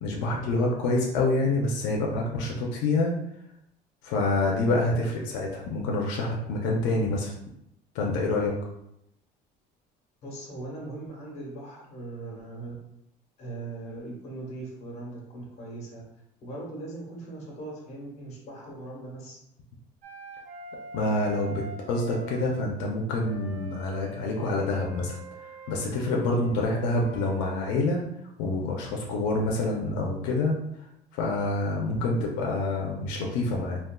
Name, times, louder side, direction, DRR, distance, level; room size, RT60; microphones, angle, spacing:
voice 1, 0.0-3.1 4.0-7.3 7.9-8.7 20.9-25.2 25.7-28.0 28.4-30.6 31.1-33.8, left 2 dB, 85° left, -1 dB, 0.6 m, -27 dB
voice 2, 10.2-12.8 13.4-16.0 16.4-19.4, right 2 dB, 40° left, -3 dB, 1.1 m, -39 dB
Wind instrument woodwind instrument, 20.0-22.6 23.2-27.8, right 4 dB, 50° right, 0.6 m, -44 dB
3.6 x 2.3 x 2.2 m, 0.78 s
cardioid pair, 175°, 17 cm